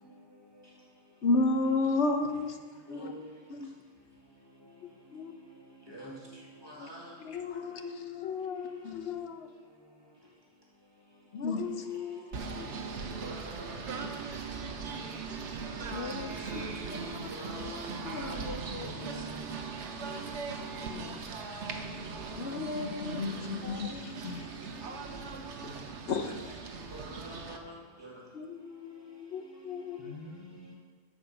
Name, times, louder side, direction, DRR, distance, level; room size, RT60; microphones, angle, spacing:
voice 1, 1.2-2.6 2.9-3.1 3.5-3.7 7.3-8.4 8.8-9.0 11.4-11.6 22.8-24.5 25.6-25.7 26.1-26.3, left 3 dB, 85° left, 1.2 m, -30 dB
voice 2, 2.9-3.2 5.9-6.1 6.6-7.0 13.4-13.5 17.3-17.8 18.3-18.4 19.0-19.2 26.9-27.6, equal, 20° right, 2.2 m, -45 dB
voice 3, 4.8-5.3 6.8-6.9 7.2-7.7 8.2-9.5 11.3-12.2 12.5-12.7 15.9-16.6 16.9-17.3 18.0-18.9 20.9-21.2 22.4-23.3 23.6-24.5 28.3-30.2, left 6 dB, 70° left, 0.9 m, -40 dB
Singing / Bird, 12.3-27.6, right 4 dB, 90° right, 1.2 m, -39 dB
voice 4, 14.8-15.1 18.6-20.0 30.0-30.7, left 3 dB, 25° left, 0.9 m, -48 dB
14.0 x 5.0 x 5.6 m
omnidirectional pair, 1.1 m